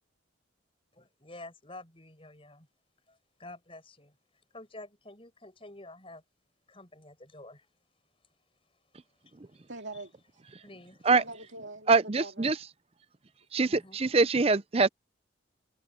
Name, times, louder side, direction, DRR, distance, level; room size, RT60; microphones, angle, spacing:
voice 1, 0.9-2.7 3.1-4.1 4.5-6.2 6.7-7.7 9.2-9.3 10.6-11.1 13.7-14.0, left 2 dB, 25° left, 6.1 m, -49 dB
voice 2, 9.7-10.4 11.0-12.5, right 2 dB, 65° right, 2.6 m, -43 dB
voice 3, 11.9-12.5 13.5-14.9, right 4 dB, 30° right, 0.5 m, -24 dB
head